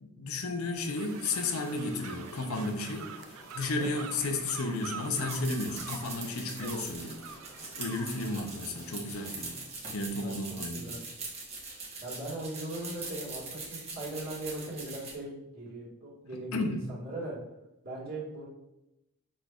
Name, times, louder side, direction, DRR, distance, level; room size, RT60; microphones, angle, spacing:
voice 1, 0.0-3.2 3.5-7.2 7.8-9.6 9.9-11.0 16.3-16.9, left 2 dB, 65° left, 4 dB, 0.6 m, -33 dB
sound 1, 0.7-9.7, left 1 dB, 30° left, 1.0 m, -53 dB
sound 2, 1.0-8.4, right 7 dB, 65° right, 0.3 m, -46 dB
sound 3, 5.0-15.1, right 3 dB, 30° right, 1.1 m, -42 dB
voice 2, 10.2-11.0 12.0-17.4 17.8-18.5, right 1 dB, 45° right, -6 dB, 1.6 m, -39 dB
6.0 x 3.2 x 2.4 m, 0.92 s
head